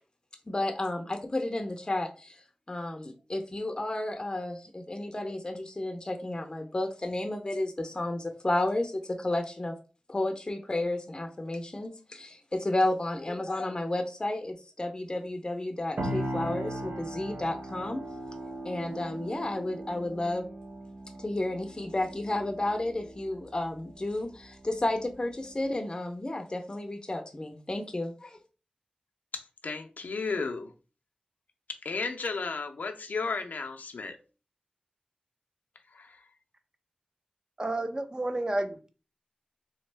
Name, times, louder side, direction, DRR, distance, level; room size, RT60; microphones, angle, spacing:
voice 1, 0.5-2.4 2.7-9.8 10.1-18.0 18.6-20.4 21.2-28.4, left 1 dB, 30° left, 0.5 m, -32 dB
sound 1, 16.0-25.7, right 1 dB, 75° right, 0.7 m, -39 dB
voice 2, 29.3-30.7 31.8-34.2 35.9-36.2, left 4 dB, 85° left, 0.5 m, -34 dB
voice 3, 37.6-38.9, right 2 dB, 30° right, 0.6 m, -31 dB
3.5 x 3.1 x 3.3 m
wide cardioid pair, 70°, 3 cm